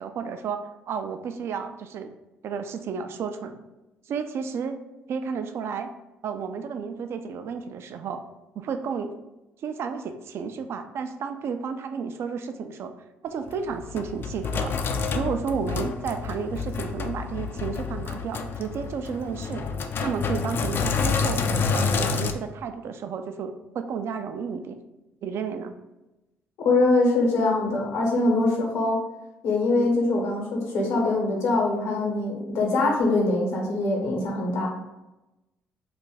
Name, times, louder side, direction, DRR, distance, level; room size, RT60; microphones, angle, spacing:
voice 1, 0.0-2.1 2.4-3.6 4.1-4.8 5.1-5.9 6.2-8.2 8.6-9.1 9.6-12.9 13.2-14.7 15.1-19.6 20.0-24.8 25.2-25.7, right 6 dB, 60° right, 8 dB, 0.3 m, -32 dB
Sink (filling or washing), 13.5-22.3, left 5 dB, 50° left, 0.3 m, -28 dB
voice 2, 26.6-29.0 29.4-34.7, left 2 dB, 75° left, -1 dB, 1.0 m, -23 dB
2.4 x 2.2 x 4.0 m, 0.99 s
supercardioid pair, 65°, 5 cm